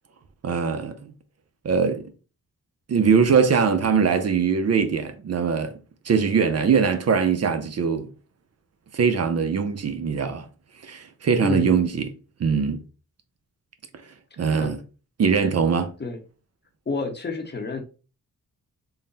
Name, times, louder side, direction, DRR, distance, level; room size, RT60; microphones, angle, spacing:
voice 1, 0.4-1.1 1.6-2.1 2.9-5.8 6.1-8.1 8.9-10.5 10.8-12.1 12.4-12.8 14.4-14.8 15.2-15.9, right 6 dB, 50° right, 0.5 m, -22 dB
voice 2, 11.4-11.9 14.6-14.8 16.0-16.2 16.9-17.8, left 3 dB, 30° left, 0.8 m, -29 dB
3.9 x 2.1 x 3.9 m
wide cardioid pair, 90°, 33 cm